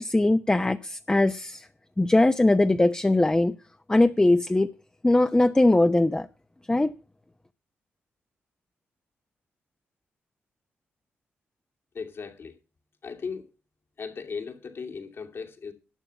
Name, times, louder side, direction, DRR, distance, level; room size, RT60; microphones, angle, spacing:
voice 1, 0.0-1.6 2.0-3.5 3.9-4.7 5.0-6.3 6.7-6.9, left 2 dB, 15° left, 0.8 m, -21 dB
voice 2, 11.9-12.6 13.0-13.5 14.0-15.7, left 5 dB, 60° left, 2.7 m, -37 dB
12.0 x 7.0 x 7.1 m
cardioid pair, 55°, 5 cm